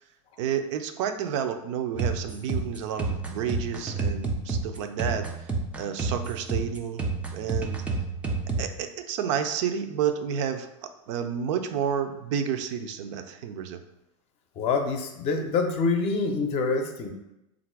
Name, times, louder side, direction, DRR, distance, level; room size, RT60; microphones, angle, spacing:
voice 1, 0.4-7.8 8.6-13.8, right 8 dB, 60° right, 8 dB, 0.5 m, -30 dB
sound 1, 1.9-8.7, right 3 dB, 10° right, 0.4 m, -29 dB
voice 2, 14.6-17.1, left 4 dB, 35° left, 5 dB, 0.6 m, -26 dB
3.7 x 2.5 x 4.5 m, 0.91 s
supercardioid pair, 140°, 17 cm